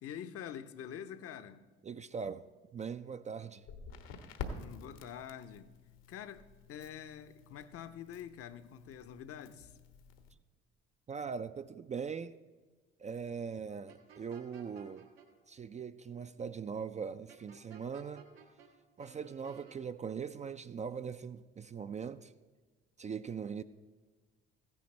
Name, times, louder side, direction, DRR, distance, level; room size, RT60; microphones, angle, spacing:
voice 1, 0.0-1.7 4.5-5.7 6.1-9.8, left 9 dB, 50° left, 0.8 m, -46 dB
voice 2, 1.8-2.5 2.7-3.6 11.1-12.4 13.0-15.1 15.5-18.3 19.0-22.3 23.0-23.6, right 6 dB, 25° right, 0.4 m, -41 dB
Crackle, 3.6-10.3, left 4 dB, 75° left, 1.3 m, -49 dB
sound 1, 13.9-15.3 17.3-18.7 19.0-19.8, right 7 dB, 85° right, 1.4 m, -56 dB
15.5 x 10.0 x 3.2 m
hypercardioid pair, 55°, 30 cm